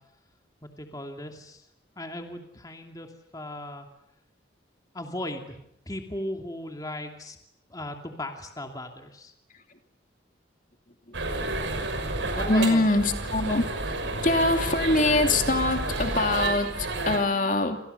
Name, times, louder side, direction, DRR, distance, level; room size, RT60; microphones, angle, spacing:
voice 1, 0.6-1.7 2.0-3.9 4.9-5.6 5.9-7.4 7.7-9.3 12.3-12.8, left 1 dB, 20° left, 4 dB, 2.6 m, -37 dB
sound 1, 11.1-17.2, right 2 dB, 85° right, 6.2 m, -30 dB
voice 2, 12.5-13.7 14.2-17.8, left 2 dB, 45° left, 5 dB, 2.8 m, -24 dB
29.0 x 27.5 x 6.9 m, 0.75 s
head